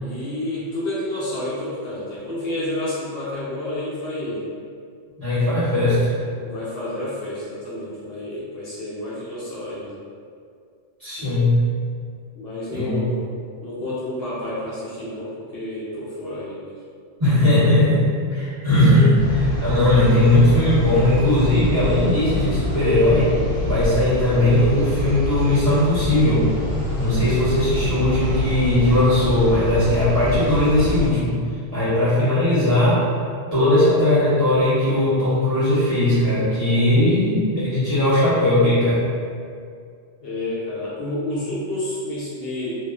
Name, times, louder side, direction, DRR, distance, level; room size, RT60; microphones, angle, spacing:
voice 1, 0.0-4.5 6.4-10.0 11.2-11.4 12.3-13.2 13.6-16.8 40.2-42.7, left 1 dB, 65° left, -9 dB, 0.7 m, -30 dB
voice 2, 5.2-6.1 11.0-11.6 12.7-13.0 17.2-23.3 23.6-26.5 26.9-31.4 31.7-33.0 33.5-39.1, left 1 dB, 35° right, -14 dB, 1.0 m, -18 dB
sound 1, 19.2-31.0, left 1 dB, 60° right, 1.3 m, -27 dB
2.4 x 2.3 x 2.2 m, 2.2 s
omnidirectional pair, 1.2 m